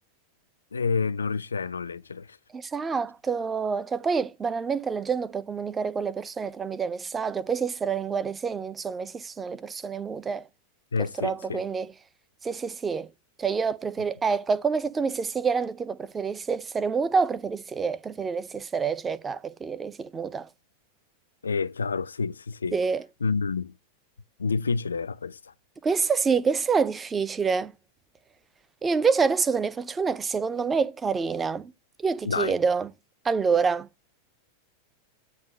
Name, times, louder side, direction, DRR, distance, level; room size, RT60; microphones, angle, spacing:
voice 1, 0.7-2.4 10.9-11.6 21.4-22.8 23.2-23.7 24.4-25.5 32.2-32.5, left 4 dB, 75° left, 0.3 m, -28 dB
voice 2, 2.5-10.5 11.2-11.9 12.4-13.1 13.4-20.5 22.7-23.0 25.8-27.7 28.8-31.7 32.0-32.9 33.2-33.9, right 5 dB, 15° right, 0.5 m, -27 dB
7.4 x 2.7 x 5.7 m
figure-of-eight pair, 90°, 0 cm